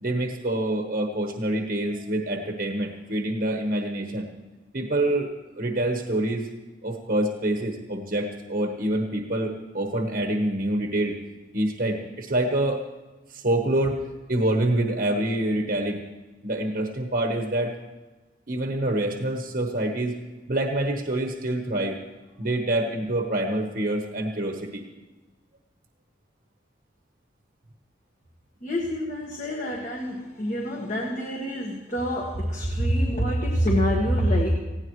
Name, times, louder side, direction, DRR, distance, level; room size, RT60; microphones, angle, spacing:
voice 1, 0.0-4.3 4.7-6.5 6.8-11.2 11.5-12.8 13.3-16.0 16.4-17.8 18.5-20.2 20.5-22.0 22.4-24.8, right 1 dB, 50° right, 2 dB, 1.2 m, -26 dB
voice 2, 28.6-34.5, equal, 40° left, -2 dB, 1.7 m, -26 dB
19.0 x 16.0 x 3.2 m, 1.2 s
head